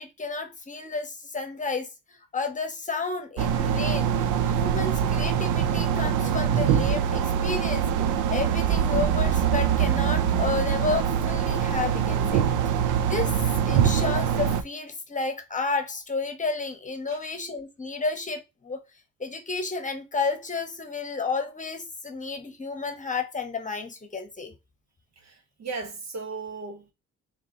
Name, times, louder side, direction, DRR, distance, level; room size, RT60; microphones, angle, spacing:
voice 1, 0.0-4.1 4.5-7.9 8.3-18.8 19.2-24.5, left 4 dB, 25° left, 1.0 m, -31 dB
sound 1, 3.4-14.6, right 8 dB, 80° right, 0.5 m, -24 dB
voice 2, 25.2-26.9, right 4 dB, 60° right, 1.2 m, -37 dB
3.8 x 3.6 x 2.8 m
cardioid pair, 90°, 30 cm